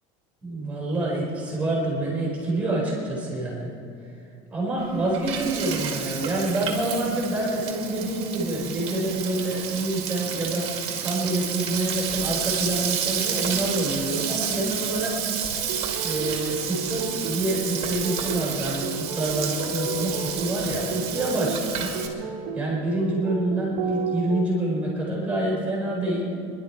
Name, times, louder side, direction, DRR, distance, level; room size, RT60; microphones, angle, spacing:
voice 1, 0.4-3.7 4.5-15.2 16.0-22.0 22.5-26.3, right 2 dB, 10° right, -6 dB, 4.6 m, -27 dB
Frying (food), 4.8-22.1, right 8 dB, 40° right, 2.3 m, -31 dB
sound 1, 15.4-24.4, right 3 dB, 65° right, 1.7 m, -33 dB
25.0 x 12.0 x 4.7 m, 2.6 s
cardioid pair, 175°, 16 cm